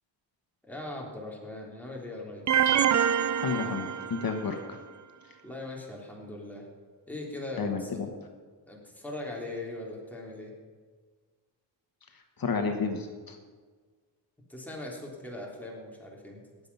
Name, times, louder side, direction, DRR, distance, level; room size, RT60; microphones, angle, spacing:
voice 1, 0.6-2.7 5.4-6.7 7.1-8.0 8.7-10.5 14.5-16.4, left 2 dB, 5° left, -2 dB, 3.4 m, -40 dB
sound 1, 2.5-4.6, right 8 dB, 45° right, 0.5 m, -26 dB
voice 2, 3.4-4.8 7.6-8.1 12.4-13.4, left 5 dB, 50° left, 5 dB, 1.4 m, -31 dB
18.5 x 7.5 x 5.5 m, 1.5 s
cardioid pair, 90°, 44 cm